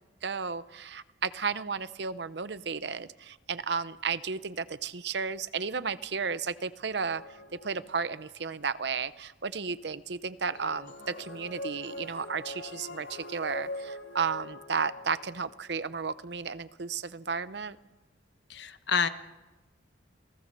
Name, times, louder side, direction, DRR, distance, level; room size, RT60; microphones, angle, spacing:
voice 1, 0.2-7.4 7.6-17.8, right 5 dB, 60° right, 15 dB, 0.7 m, -33 dB
sound 1, 6.9-8.2 10.5-15.8, left 1 dB, 85° left, 1.6 m, -42 dB
voice 2, 18.5-19.1, left 6 dB, 65° left, 10 dB, 1.1 m, -28 dB
28.5 x 17.5 x 6.7 m, 1.1 s
head